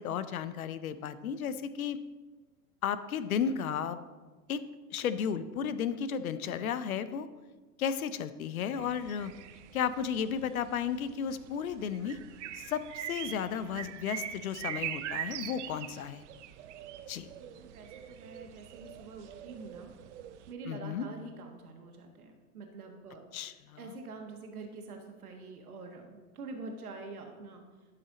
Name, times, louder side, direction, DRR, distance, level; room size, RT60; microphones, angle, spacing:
voice 1, 0.0-2.0 2.8-4.0 4.5-4.6 4.9-7.3 7.8-9.3 9.7-12.2 12.6-16.2 17.1-17.3 20.7-21.1 23.3-23.8, left 7 dB, 65° left, 13 dB, 0.7 m, -33 dB
sound 1, 8.8-20.5, right 11 dB, 50° right, 0.6 m, -43 dB
voice 2, 17.4-19.9 20.5-23.2 23.8-27.6, right 3 dB, 70° right, 3 dB, 1.6 m, -46 dB
11.5 x 5.8 x 3.9 m, 1.3 s
figure-of-eight pair, 100°, 46 cm